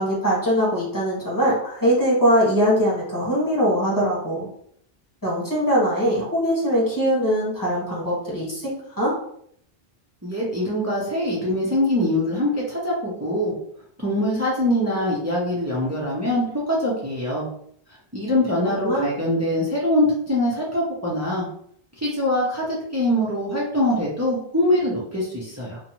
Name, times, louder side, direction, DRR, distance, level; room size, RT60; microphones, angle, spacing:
voice 1, 0.0-4.5 5.2-9.2 18.8-19.1, equal, 20° left, -7 dB, 1.3 m, -21 dB
voice 2, 10.2-13.5 14.0-17.5 18.1-21.5 22.0-25.8, left 1 dB, 20° right, -5 dB, 0.5 m, -23 dB
2.6 x 2.2 x 2.9 m, 0.65 s
omnidirectional pair, 1.0 m